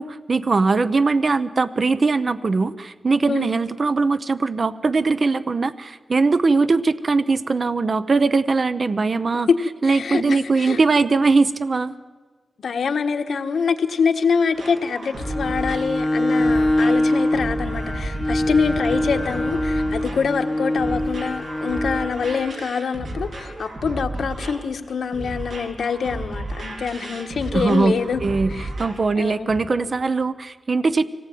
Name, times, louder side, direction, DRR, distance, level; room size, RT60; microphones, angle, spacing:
voice 1, 0.0-9.5 9.8-12.0 27.5-27.9 28.2-28.5 28.8-31.0, right 4 dB, 40° right, 12 dB, 0.7 m, -20 dB
voice 2, 9.8-10.8 12.6-28.7 29.1-29.5, left 5 dB, 80° left, 6 dB, 1.4 m, -25 dB
sound 1, 14.5-29.1 29.5-29.6, right 1 dB, 70° right, 3.2 m, -33 dB
Bowed string instrument, 15.1-22.2, left 1 dB, 10° right, 3.8 m, -23 dB
24.5 x 18.0 x 9.3 m, 1.4 s
wide cardioid pair, 150°, 0 cm